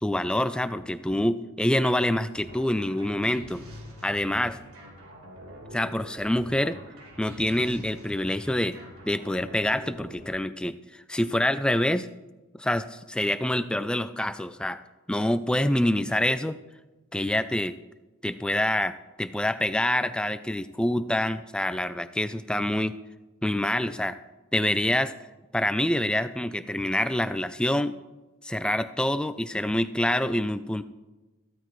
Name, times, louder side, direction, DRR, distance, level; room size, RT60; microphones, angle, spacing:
voice 1, 0.0-3.6 4.0-4.6 5.7-6.8 7.2-8.8 9.0-12.1 12.6-14.8 15.1-16.6 17.1-17.7 18.2-23.0 23.4-24.2 24.5-25.1 25.5-28.0 28.4-30.8, left 1 dB, 5° left, 11 dB, 0.3 m, -26 dB
sound 1, 2.3-10.4, equal, 75° right, 3.3 m, -45 dB
15.0 x 13.0 x 3.1 m, 1.1 s
head